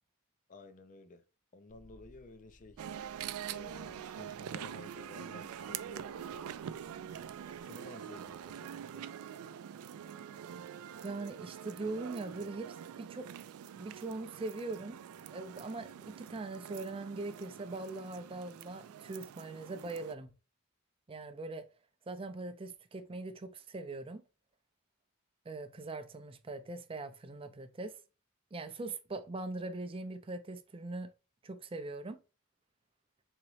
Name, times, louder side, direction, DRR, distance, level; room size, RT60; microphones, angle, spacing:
voice 1, 0.5-1.2 1.5-2.8 3.5-6.9 7.6-9.1, left 2 dB, 35° left, 0.5 m, -53 dB
sound 1, 1.7-7.6, equal, 75° left, 1.7 m, -64 dB
sound 2, 2.8-20.2, right 9 dB, 85° right, 0.3 m, -45 dB
voice 2, 11.0-13.3 13.8-15.0 15.3-20.3 21.1-21.7 22.1-24.2 25.5-28.0 28.5-31.1 31.4-32.2, right 2 dB, 25° right, 0.4 m, -41 dB
3.9 x 2.9 x 3.0 m
head